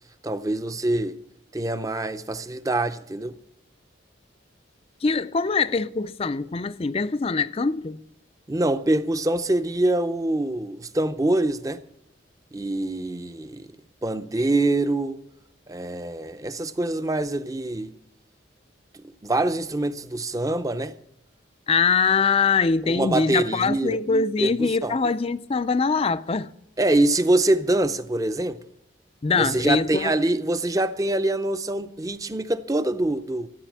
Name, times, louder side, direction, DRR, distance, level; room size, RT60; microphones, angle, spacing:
voice 1, 0.2-1.2 1.5-3.3 8.5-11.8 12.5-13.7 14.0-15.2 15.7-17.9 18.9-20.9 22.9-24.0 24.4-25.0 26.8-28.6 29.3-33.5, right 2 dB, 15° right, 0.6 m, -24 dB
voice 2, 5.0-8.0 21.7-26.5 29.2-30.1, left 4 dB, 30° left, 0.4 m, -23 dB
13.5 x 8.5 x 7.3 m
head